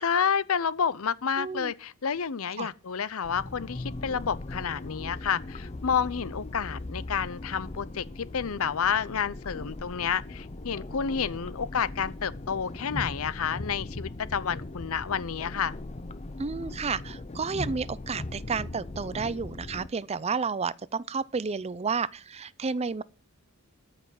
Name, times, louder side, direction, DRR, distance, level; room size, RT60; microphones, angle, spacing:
voice 1, 0.0-15.8, left 7 dB, 70° left, 0.6 m, -30 dB
voice 2, 1.4-1.7 2.6-2.7 16.4-23.0, right 5 dB, 30° right, 0.5 m, -31 dB
sound 1, 3.2-19.9, left 2 dB, 30° left, 0.7 m, -39 dB
13.5 x 6.1 x 7.5 m
head